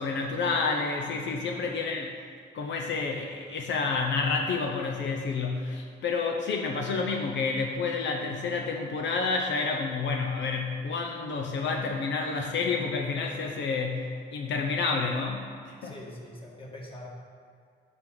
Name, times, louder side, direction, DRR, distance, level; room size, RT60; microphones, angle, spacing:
voice 1, 0.0-2.1 2.5-15.9, left 4 dB, 65° left, 2 dB, 0.8 m, -29 dB
voice 2, 15.8-17.1, left 1 dB, 25° left, -3 dB, 1.9 m, -44 dB
9.2 x 6.2 x 3.9 m, 2.1 s
cardioid pair, 90°, 20 cm